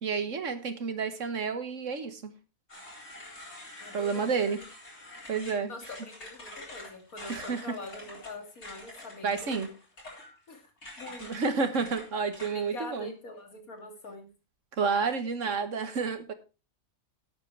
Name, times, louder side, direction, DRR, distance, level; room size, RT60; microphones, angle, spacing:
voice 1, 0.0-2.3 3.9-4.6 5.3-5.7 7.3-7.6 9.2-9.7 11.2-13.1 14.8-16.3, right 5 dB, 60° right, 10 dB, 1.7 m, -30 dB
sound 1, 2.7-12.8, left 2 dB, 50° left, 4.4 m, -46 dB
voice 2, 3.8-4.3 5.7-9.6 10.5-10.7 11.0-11.3 12.5-14.3, left 2 dB, 85° left, 5 dB, 2.9 m, -44 dB
11.5 x 8.3 x 4.7 m, 0.31 s
omnidirectional pair, 1.5 m